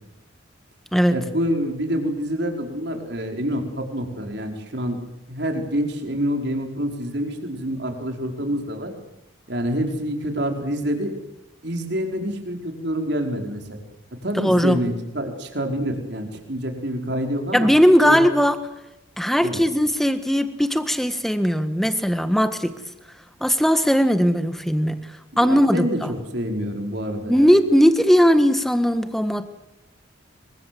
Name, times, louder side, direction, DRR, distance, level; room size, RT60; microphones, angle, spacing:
voice 1, 1.1-5.0 5.3-8.9 9.5-11.1 11.6-13.8 14.2-17.7 18.0-18.2 19.4-19.6 25.4-27.5, equal, 55° right, 3 dB, 4.8 m, -27 dB
voice 2, 14.4-14.8 17.5-18.6 19.2-22.7 23.4-25.0 25.4-26.1 27.2-29.5, equal, ahead, 9 dB, 1.6 m, -18 dB
28.0 x 24.0 x 7.9 m, 0.92 s
head